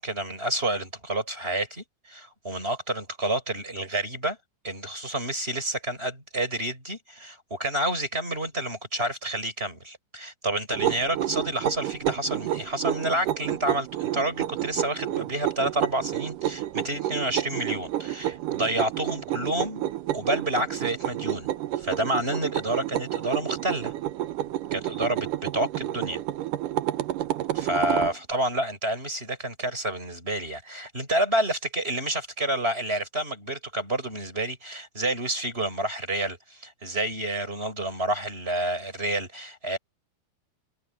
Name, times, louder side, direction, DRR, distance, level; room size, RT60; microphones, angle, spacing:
voice 1, 0.0-4.4 4.6-19.8 20.1-21.5 21.7-23.9 24.7-26.2 27.5-39.8, right 1 dB, 15° right, 6.1 m, -29 dB
sound 1, 10.7-28.2, right 13 dB, 80° right, 2.5 m, -30 dB
omnidirectional pair, 3.8 m